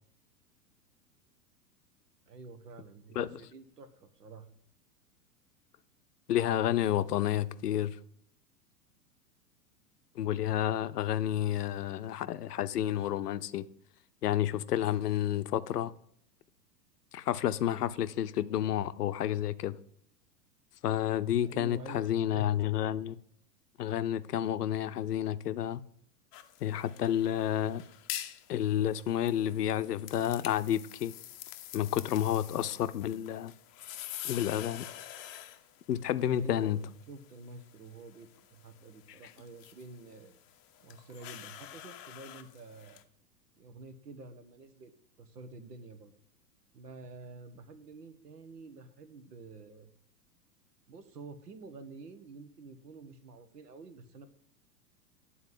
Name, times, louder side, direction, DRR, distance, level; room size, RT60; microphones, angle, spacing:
voice 1, 2.3-4.5 21.4-22.5 36.3-40.3 40.8-43.0 43.6-44.9 45.2-46.1 46.7-49.9 50.9-54.3, right 3 dB, 70° right, 1.3 m, -49 dB
voice 2, 6.3-8.0 10.2-13.7 14.2-15.9 17.1-19.8 20.8-23.2 23.8-25.8 26.6-27.8 28.5-31.1 31.7-33.5 34.2-34.9 35.9-36.8, left 11 dB, 70° left, 0.7 m, -30 dB
sound 1, 26.3-43.0, left 13 dB, 25° left, 0.6 m, -47 dB
9.2 x 4.3 x 7.5 m
figure-of-eight pair, 105°, 49 cm